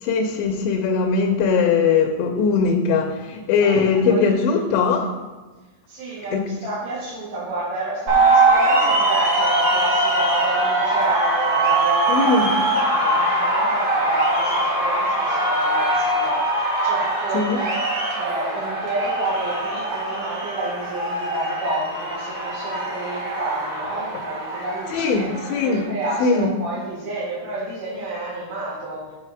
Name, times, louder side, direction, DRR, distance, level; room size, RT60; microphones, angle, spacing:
voice 1, 0.0-5.1 6.3-6.5 12.1-12.5 17.3-17.6 24.9-25.9 26.2-26.5, left 5 dB, 80° left, 1 dB, 2.8 m, -20 dB
voice 2, 3.6-4.3 5.0-5.1 5.9-25.3 25.6-29.1, right 2 dB, 75° right, -7 dB, 5.1 m, -30 dB
sound 1, 8.1-25.8, right 2 dB, 45° right, 2.5 m, -22 dB
9.9 x 5.1 x 4.6 m, 1.3 s
omnidirectional pair, 5.2 m